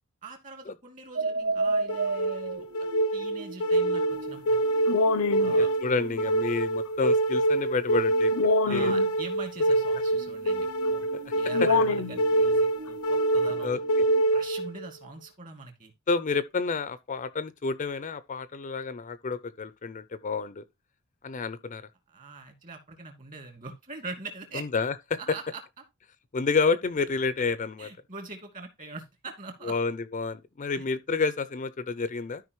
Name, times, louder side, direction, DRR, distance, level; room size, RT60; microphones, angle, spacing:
voice 1, 0.2-2.7 3.1-4.9 5.4-5.7 8.7-11.1 11.4-13.8 14.3-15.9 22.1-24.6 25.2-25.6 27.8-29.7 30.7-30.9, right 3 dB, 40° right, 2.2 m, -43 dB
sound 1, 1.1-6.3 8.1-8.4 10.1-14.2, right 3 dB, 65° right, 0.6 m, -35 dB
sound 2, 1.9-14.9, right 1 dB, 85° left, 0.6 m, -25 dB
voice 2, 5.6-8.9 13.6-13.8 16.1-20.6 21.2-21.8 24.5-25.2 26.3-27.9 29.6-32.4, left 4 dB, 35° left, 0.4 m, -29 dB
13.0 x 5.0 x 3.0 m
head